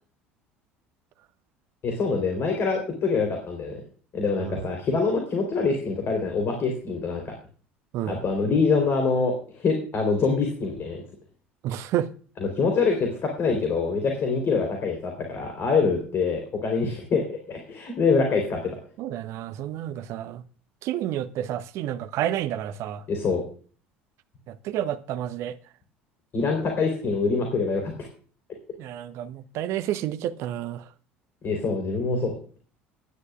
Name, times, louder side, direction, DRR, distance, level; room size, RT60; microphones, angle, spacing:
voice 1, 1.8-3.8 4.1-7.3 8.0-11.0 12.4-18.8 23.1-23.4 26.3-28.1 31.4-32.3, left 4 dB, 40° left, 3.8 m, -25 dB
voice 2, 11.6-12.1 19.0-20.4 20.8-23.0 24.5-25.6 28.8-30.8, right 11 dB, 50° right, 0.9 m, -30 dB
19.0 x 11.0 x 2.4 m
figure-of-eight pair, 60°, 6 cm